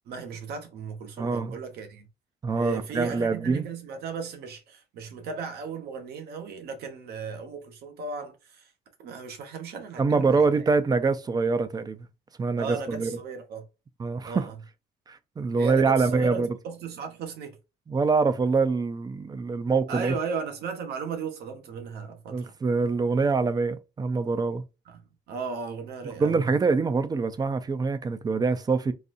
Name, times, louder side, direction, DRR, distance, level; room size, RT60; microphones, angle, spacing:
voice 1, 0.1-2.1 2.5-8.7 9.0-10.5 12.6-13.6 14.2-14.5 15.6-17.5 19.9-22.4 24.9-26.5, right 5 dB, 70° right, 1.1 m, -36 dB
voice 2, 1.2-1.5 2.4-3.7 10.0-12.1 12.4-13.1 14.0-14.5 15.1-16.6 17.9-20.1 22.3-24.6 26.2-28.9, right 4 dB, 25° right, 0.5 m, -25 dB
4.0 x 2.6 x 2.5 m
cardioid pair, 110°, 17 cm